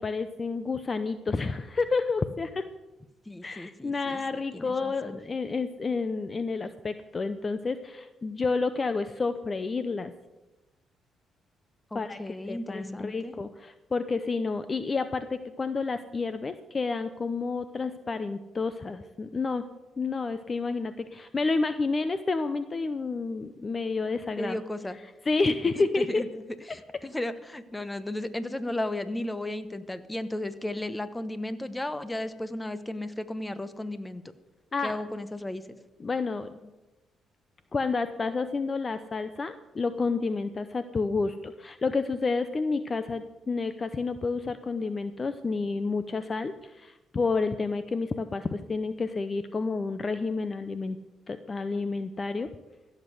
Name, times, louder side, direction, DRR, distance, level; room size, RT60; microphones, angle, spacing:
voice 1, 0.0-2.6 3.4-10.1 11.9-12.2 12.5-19.6 20.0-24.6 25.3-26.2 34.7-34.9 36.0-36.7 37.7-51.0 51.3-52.5, left 4 dB, 35° left, 11 dB, 0.7 m, -30 dB
voice 2, 3.3-5.2 11.9-13.3 24.4-25.0 25.8-34.2 34.8-35.8, left 1 dB, 15° left, 12 dB, 1.0 m, -35 dB
15.5 x 7.4 x 8.0 m, 1.1 s
cardioid pair, 90°, 0 cm